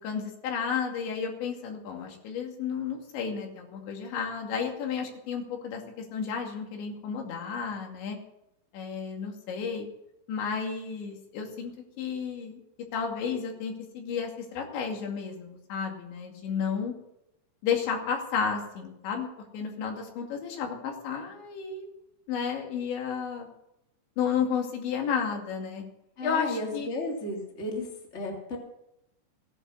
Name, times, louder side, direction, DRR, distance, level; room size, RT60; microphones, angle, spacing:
voice 1, 0.0-8.2 8.7-9.9 10.3-12.6 12.9-16.9 17.6-21.9 22.3-23.5 24.2-25.8 26.2-26.9, left 6 dB, 75° left, 2 dB, 4.6 m, -32 dB
voice 2, 26.2-27.9 28.1-28.6, left 2 dB, 20° left, 0 dB, 2.6 m, -33 dB
17.0 x 11.0 x 6.3 m, 0.83 s
omnidirectional pair, 5.3 m